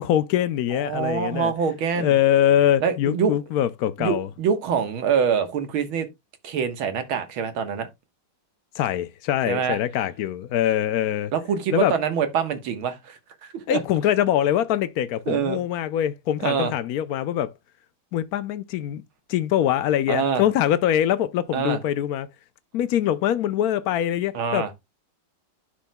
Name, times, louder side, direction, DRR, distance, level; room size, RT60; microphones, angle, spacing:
voice 1, 0.0-1.5 2.0-4.3 8.7-11.3 11.7-11.9 13.7-17.5 18.1-19.0 19.3-22.3 22.7-24.7, left 11 dB, 90° left, 0.8 m, -23 dB
voice 2, 0.7-2.1 2.8-3.3 4.0-6.1 6.4-7.9 9.5-9.8 11.3-13.8 15.3-15.6 16.4-16.7 20.1-20.4 21.5-21.8 24.3-24.7, right 6 dB, 80° right, 2.1 m, -25 dB
11.5 x 6.3 x 2.2 m
omnidirectional pair, 2.2 m